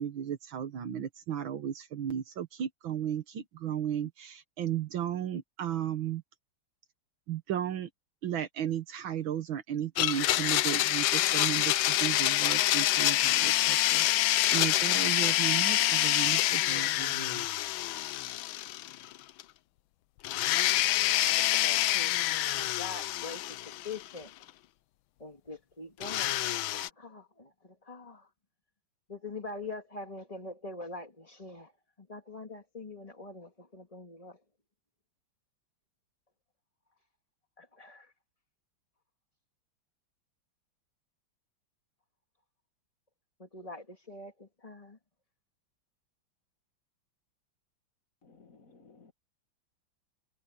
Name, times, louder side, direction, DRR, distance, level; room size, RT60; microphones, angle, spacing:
voice 1, 0.0-6.2 7.3-7.9 8.2-17.5, right 10 dB, 75° right, 2.0 m, -35 dB
Domestic sounds home sounds, 10.0-19.1 19.4-19.5 20.2-24.2 26.0-26.9, left 15 dB, 80° left, 1.4 m, -27 dB
voice 2, 21.0-24.5 25.2-28.3 29.1-34.4 37.6-38.1 43.4-45.0, left 3 dB, 15° left, 2.5 m, -44 dB
voice 3, 48.2-49.1, left 4 dB, 40° left, 2.3 m, -58 dB
omnidirectional pair, 2.2 m